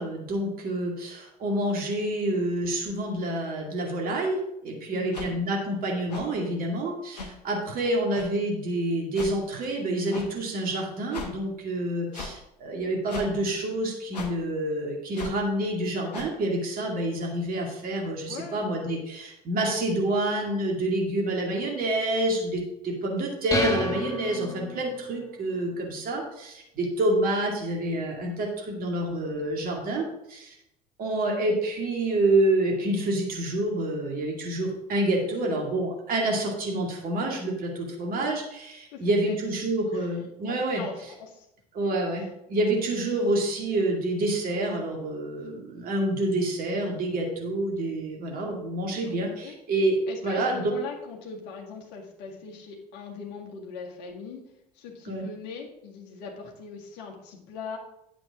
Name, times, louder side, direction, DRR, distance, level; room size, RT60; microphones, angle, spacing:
voice 1, 0.0-30.6 31.0-40.8 41.7-50.0 50.2-50.7 55.1-55.2, right 1 dB, 45° right, 0 dB, 2.2 m, -28 dB
voice 2, 4.9-5.4 18.3-18.6 35.1-35.6 38.9-39.4 39.9-40.1 40.4-41.5 42.1-42.3 49.0-49.6 50.1-54.4 54.7-57.8, left 5 dB, 60° left, 0 dB, 1.9 m, -41 dB
sound 1, 5.1-5.3 6.1-6.2 7.1-7.3 8.1-8.3 9.1-9.3 10.1-10.3 11.1-11.3 12.1-12.3 13.1-13.3 14.1-14.3 15.1-15.4 16.1-16.3, left 4 dB, 80° left, 1.1 m, -37 dB
sound 2, 23.5-25.1, left 3 dB, 15° left, 1.6 m, -30 dB
9.4 x 7.5 x 3.7 m, 0.83 s
figure-of-eight pair, 60°, 21 cm